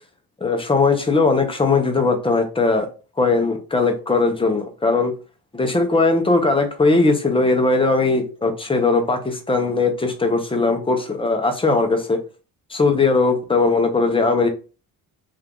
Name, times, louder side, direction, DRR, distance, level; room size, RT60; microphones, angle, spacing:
voice 1, 0.4-2.9 3.2-5.1 5.5-12.2 12.7-14.5, left 3 dB, 15° left, 1.0 m, -19 dB
3.7 x 2.7 x 3.7 m
cardioid pair, 95°, 35 cm